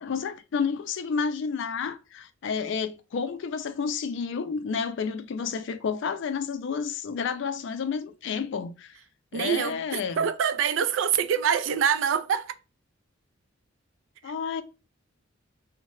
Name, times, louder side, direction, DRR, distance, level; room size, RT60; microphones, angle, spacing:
voice 1, 0.0-8.9 9.3-10.3 14.2-14.6, left 6 dB, 60° left, 0.3 m, -30 dB
voice 2, 9.3-12.6 14.2-14.3, right 8 dB, 65° right, 0.3 m, -25 dB
2.7 x 2.1 x 3.0 m
head